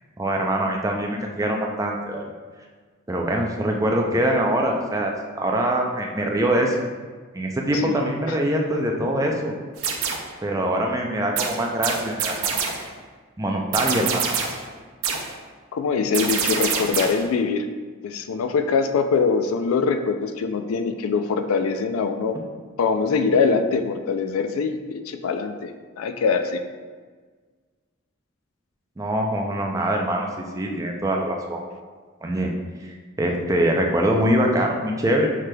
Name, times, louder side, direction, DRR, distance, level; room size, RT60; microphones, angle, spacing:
voice 1, 0.2-2.2 3.1-6.8 7.3-9.5 10.4-12.6 13.4-14.2 29.0-31.7 32.2-32.5 32.8-35.3, right 1 dB, 15° right, 1 dB, 0.4 m, -23 dB
sound 1, 9.8-10.4 11.4-12.9 13.7-14.7 15.0-15.4 16.1-17.3, right 6 dB, 85° right, 0.5 m, -26 dB
voice 2, 15.7-17.7 18.0-22.4 22.8-26.6, left 5 dB, 85° left, 8 dB, 0.3 m, -23 dB
5.7 x 3.2 x 2.2 m, 1.5 s
head